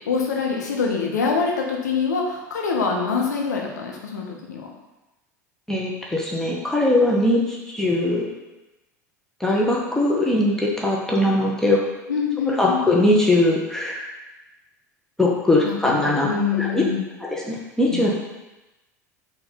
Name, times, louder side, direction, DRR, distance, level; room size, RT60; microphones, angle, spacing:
voice 1, 0.1-4.7 12.1-12.8 15.6-17.0 17.9-18.1, left 5 dB, 80° left, 0 dB, 0.8 m, -25 dB
voice 2, 5.7-8.3 9.4-11.8 12.5-14.0 15.2-16.3 16.6-16.8 17.3-18.1, left 1 dB, 5° left, -3 dB, 0.9 m, -20 dB
4.6 x 2.6 x 4.1 m, 1.1 s
figure-of-eight pair, 75°, 9 cm